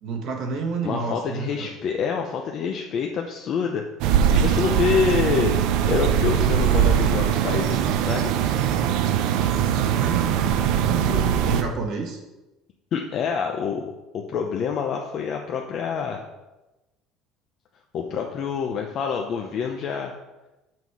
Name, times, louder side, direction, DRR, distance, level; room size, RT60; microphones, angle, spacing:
voice 1, 0.0-1.7 9.9-10.4 10.8-12.2, right 4 dB, 50° right, 2 dB, 1.5 m, -30 dB
voice 2, 0.8-3.9 4.3-5.6 5.9-8.3 11.0-11.3 12.9-16.2 17.9-20.1, left 6 dB, 40° left, 2 dB, 0.7 m, -27 dB
sound 1, 4.0-11.6, right 9 dB, 65° right, 0.6 m, -21 dB
7.3 x 6.1 x 4.7 m, 1.0 s
cardioid pair, 160°, 0 cm